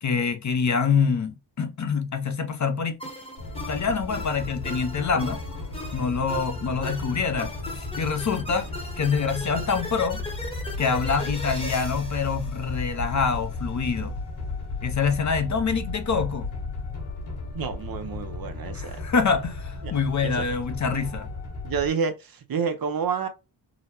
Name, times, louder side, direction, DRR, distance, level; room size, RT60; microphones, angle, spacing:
voice 1, 0.0-3.0 3.7-5.4 5.9-7.5 7.8-8.7 9.0-10.2 10.8-14.1 14.8-16.5 18.7-21.3, left 5 dB, 40° left, 0.6 m, -25 dB
sound 1, 3.0-13.4, left 1 dB, 10° left, 0.9 m, -39 dB
sound 2, 3.4-21.9, left 3 dB, 85° left, 1.7 m, -34 dB
voice 2, 17.5-19.0 19.8-19.9 20.2-20.4 21.6-23.3, right 6 dB, 50° right, 0.6 m, -29 dB
3.9 x 2.1 x 2.8 m
wide cardioid pair, 100°, 46 cm